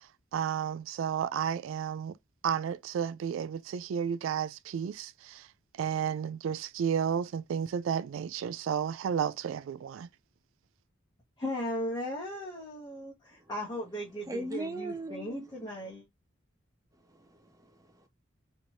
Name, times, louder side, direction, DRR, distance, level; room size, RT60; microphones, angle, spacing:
voice 1, 0.3-2.1 2.4-5.4 5.8-10.1, right 8 dB, 80° right, 0.3 m, -32 dB
voice 2, 11.4-16.0, left 1 dB, 20° left, 1.3 m, -37 dB
voice 3, 14.3-15.7 17.1-18.1, right 2 dB, 15° right, 0.6 m, -39 dB
4.4 x 3.1 x 2.6 m
head